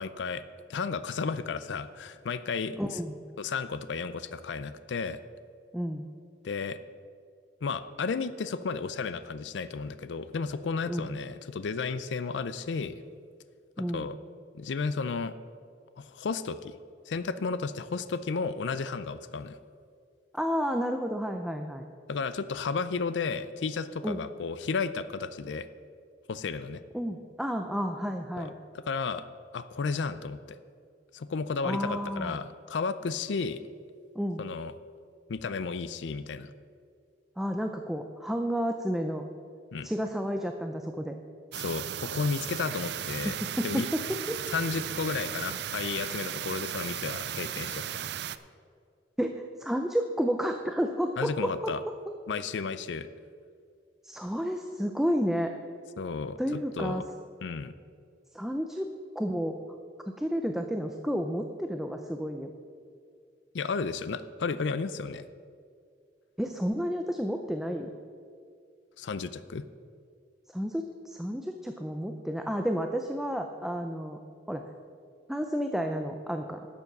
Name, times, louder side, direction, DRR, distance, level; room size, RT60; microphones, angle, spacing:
voice 1, 0.0-2.8 3.4-5.2 6.4-6.8 7.6-13.0 13.9-14.2 14.5-15.4 16.0-16.8 17.1-19.6 22.1-25.7 26.3-26.8 28.4-29.2 29.5-30.6 31.1-33.6 34.4-34.7 35.3-36.5 39.7-39.9 41.5-43.4 43.6-43.9 44.5-47.9 51.2-51.8 52.3-53.1 56.0-57.0 57.4-57.7 63.5-65.3 69.0-69.7, left 4 dB, 85° left, 13 dB, 0.4 m, -33 dB
voice 2, 2.8-3.2 5.7-6.0 10.9-11.2 13.8-14.1 20.3-21.8 24.0-24.2 26.9-28.5 31.6-32.4 34.1-34.4 37.4-39.3 39.8-41.2 43.6-44.4 49.2-51.7 54.0-55.5 56.4-57.0 58.3-59.6 60.1-62.5 66.4-67.9 70.5-74.2 74.5-74.6 75.3-76.7, equal, ahead, 5 dB, 0.5 m, -31 dB
sound 1, 41.5-48.4, right 10 dB, 70° right, 0.4 m, -36 dB
12.0 x 7.2 x 6.0 m, 2.2 s
head